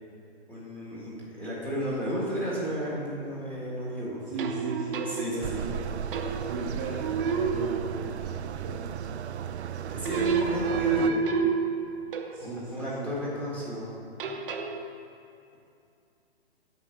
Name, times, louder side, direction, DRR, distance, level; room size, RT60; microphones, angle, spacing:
voice 1, 0.5-4.2 5.0-5.6 9.8-11.2 12.4-13.9, equal, 5° left, -7 dB, 1.5 m, -33 dB
voice 2, 4.3-5.9 6.4-8.3 8.6-9.0 12.3-13.2, right 3 dB, 20° right, -6 dB, 0.9 m, -37 dB
sound 1, 4.4-5.7 6.1-6.7 7.0-8.3 10.0-12.5 14.2-14.9, right 5 dB, 55° right, 0.9 m, -29 dB
sound 2, 5.4-11.1, right 8 dB, 90° right, 0.5 m, -35 dB
8.2 x 4.9 x 6.8 m, 2.5 s
hypercardioid pair, 150°, 32 cm